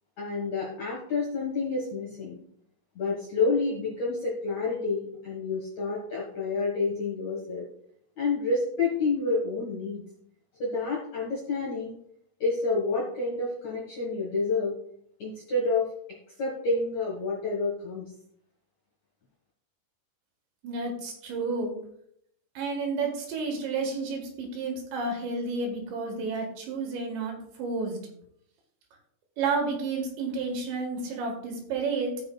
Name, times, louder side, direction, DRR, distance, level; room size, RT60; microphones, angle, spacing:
voice 1, 0.2-2.4 3.0-7.6 8.2-10.0 10.6-12.0 12.4-14.7 15.2-15.9 16.4-18.1, left 3 dB, 60° left, -4 dB, 2.0 m, -29 dB
voice 2, 20.6-21.8 22.6-28.0 29.4-32.2, right 4 dB, 75° right, 1 dB, 3.7 m, -31 dB
16.5 x 6.2 x 2.3 m, 0.69 s
omnidirectional pair, 5.3 m